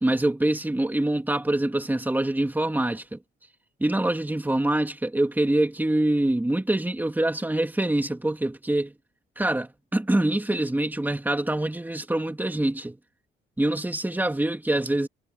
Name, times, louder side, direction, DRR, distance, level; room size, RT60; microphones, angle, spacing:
voice 1, 0.0-3.2 3.8-8.9 9.4-13.0 13.6-15.1, right 1 dB, 10° right, 3.0 m, -25 dB
cardioid pair, 90°, 20 cm